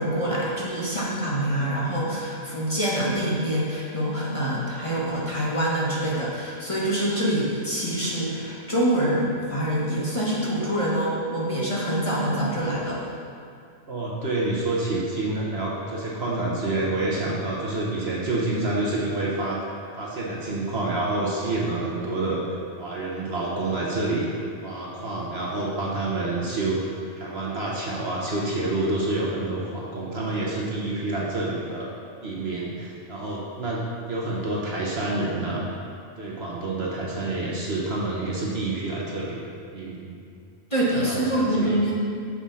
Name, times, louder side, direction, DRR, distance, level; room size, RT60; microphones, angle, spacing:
voice 1, 0.0-13.0 40.7-41.9, right 1 dB, 25° left, -6 dB, 1.5 m, -25 dB
voice 2, 13.9-19.6 20.0-24.3 24.6-26.8 27.2-31.9 32.2-33.8 34.1-35.7 36.2-39.4 39.7-40.2 41.0-41.9, right 2 dB, 50° right, -4 dB, 1.2 m, -28 dB
9.7 x 6.3 x 4.1 m, 2.3 s
omnidirectional pair, 1.5 m